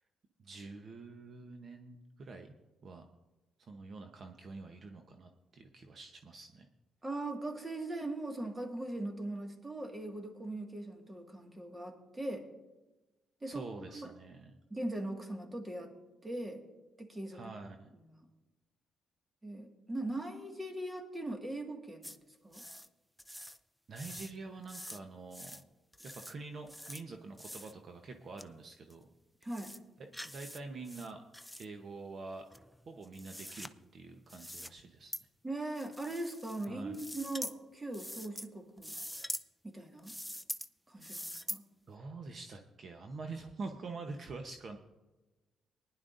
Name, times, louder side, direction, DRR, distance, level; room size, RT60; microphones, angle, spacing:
voice 1, 0.4-2.5 2.8-3.0 3.6-6.7 13.5-14.5 17.3-17.9 23.9-25.6 26.0-29.1 30.0-31.2 31.5-32.4 32.9-35.1 36.7-37.0 41.0-41.1 41.9-44.8, right 3 dB, 50° right, 5 dB, 0.9 m, -46 dB
voice 2, 7.0-12.4 13.4-14.1 14.7-15.9 16.2-16.6 17.0-17.4 19.4-22.1 22.4-22.6 29.4-29.7 35.4-38.9 39.6-40.1 40.9-41.6, right 1 dB, 15° right, 4 dB, 1.9 m, -40 dB
sound 1, 22.0-22.2 22.5-22.9 23.2-23.6 24.0-24.3 24.6-25.0 25.3-25.6 25.9-26.3 26.7-27.0 27.4-27.7 28.4-28.5 28.9-29.0 29.4-29.8 30.1-30.6 30.8-31.6 32.5-33.7 34.3-34.7 35.1-35.2 35.7-36.6 36.9-37.5 37.9-38.5 38.8-39.4 40.0-40.7 41.0-41.6, equal, ahead, 0.5 m, -44 dB
20.0 x 10.5 x 2.6 m, 1.1 s
cardioid pair, 90°, 0 cm